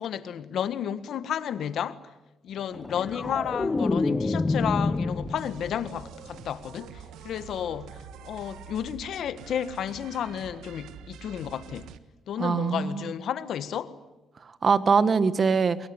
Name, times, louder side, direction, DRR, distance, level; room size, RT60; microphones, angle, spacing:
voice 1, 0.0-2.0 2.4-11.9 12.3-13.9, left 9 dB, 70° left, 1.6 m, -32 dB
sound 1, 2.7-5.9 6.3-6.6, left 3 dB, 25° left, 1.0 m, -28 dB
sound 2, 5.1-12.0, right 8 dB, 85° right, 1.5 m, -46 dB
voice 2, 12.4-13.1 14.4-15.9, right 5 dB, 40° right, 1.7 m, -23 dB
24.0 x 23.0 x 9.9 m
cardioid pair, 90°, 0 cm